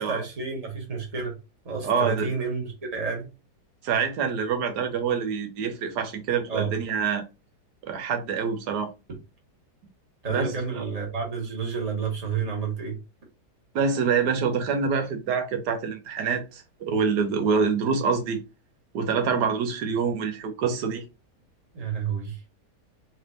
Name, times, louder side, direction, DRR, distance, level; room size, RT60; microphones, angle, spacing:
voice 1, 0.0-1.4 1.6-3.3 6.5-6.7 10.2-13.0 21.7-22.4, right 5 dB, 25° right, 1.3 m, -30 dB
voice 2, 1.8-2.3 3.8-7.2 7.8-8.9 10.3-10.9 13.7-18.4 18.9-21.0, right 6 dB, 85° right, 1.4 m, -26 dB
4.2 x 3.3 x 2.6 m
omnidirectional pair, 1.7 m